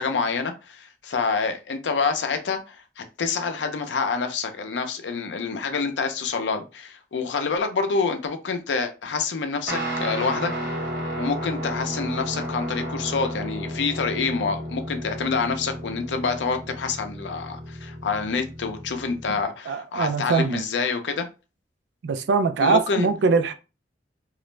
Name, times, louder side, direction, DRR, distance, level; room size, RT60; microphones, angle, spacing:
voice 1, 0.0-10.8 11.2-21.3 22.6-23.1, left 4 dB, 85° left, 0.5 m, -27 dB
Guitar, 9.7-19.4, equal, 55° right, 1.0 m, -32 dB
voice 2, 19.3-20.6 22.0-23.5, right 5 dB, 75° right, 0.3 m, -23 dB
2.4 x 2.0 x 3.1 m
head